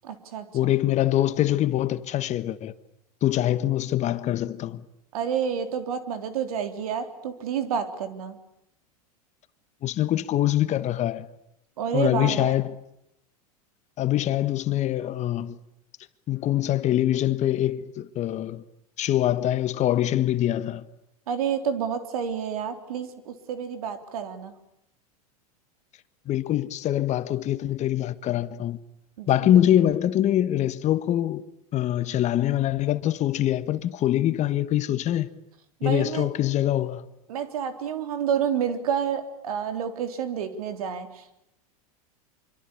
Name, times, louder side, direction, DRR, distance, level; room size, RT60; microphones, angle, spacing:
voice 1, 0.0-0.7 5.1-8.4 11.8-12.5 21.3-24.5 29.2-29.5 35.8-36.3 37.3-41.4, right 8 dB, 70° right, 3.6 m, -29 dB
voice 2, 0.5-2.7 3.2-4.8 9.8-11.3 11.9-12.8 14.0-15.6 16.3-18.6 19.0-20.8 26.3-28.8 29.3-31.4 31.7-35.3 35.8-37.1, left 12 dB, 35° left, 1.4 m, -24 dB
26.0 x 25.0 x 8.6 m
hypercardioid pair, 95°, 19 cm